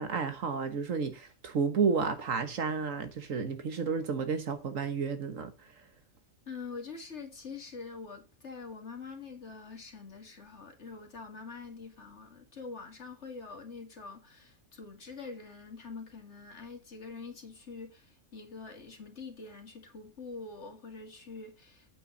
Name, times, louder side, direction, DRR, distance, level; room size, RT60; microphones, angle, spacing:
voice 1, 0.0-5.5, right 5 dB, 70° right, 1.7 m, -31 dB
voice 2, 6.5-21.9, left 4 dB, 55° left, 2.5 m, -45 dB
9.1 x 8.3 x 4.0 m
omnidirectional pair, 1.5 m